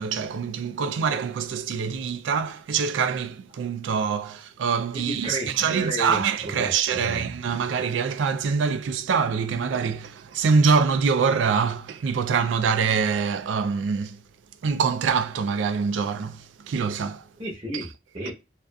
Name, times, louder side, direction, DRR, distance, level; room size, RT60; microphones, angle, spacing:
voice 1, 0.0-14.2 14.6-17.3, right 6 dB, 85° right, 0.3 m, -24 dB
voice 2, 4.9-7.3 17.4-18.3, right 1 dB, 30° right, 0.9 m, -33 dB
2.4 x 2.4 x 2.2 m
head